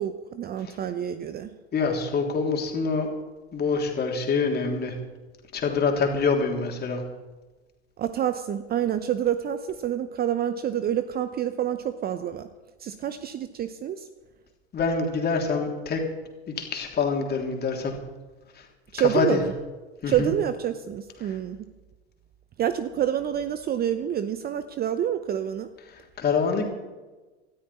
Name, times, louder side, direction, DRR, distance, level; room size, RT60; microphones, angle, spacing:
voice 1, 0.0-1.5 8.0-12.5 12.8-14.1 18.9-19.5 20.1-21.7 22.6-25.7, right 10 dB, 30° right, 11 dB, 0.7 m, -27 dB
voice 2, 1.7-3.1 3.5-4.9 5.5-7.0 14.7-16.0 16.6-17.9 19.0-19.4 20.0-20.3 26.2-26.6, left 5 dB, 30° left, 1 dB, 3.2 m, -25 dB
18.5 x 13.0 x 4.3 m, 1.2 s
hypercardioid pair, 85°, 34 cm